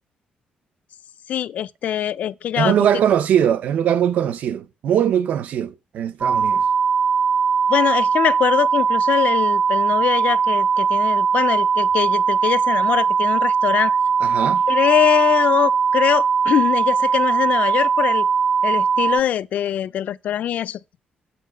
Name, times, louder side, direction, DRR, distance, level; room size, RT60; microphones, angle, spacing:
voice 1, 1.3-2.8 7.7-14.0 14.7-18.3 18.6-20.8, left 10 dB, 70° left, 0.5 m, -22 dB
voice 2, 2.6-6.6 14.2-14.6, right 9 dB, 70° right, 0.6 m, -20 dB
sound 1, 6.2-19.2, right 6 dB, 25° right, 0.4 m, -19 dB
8.4 x 8.4 x 5.0 m
cardioid pair, 135°, 3 cm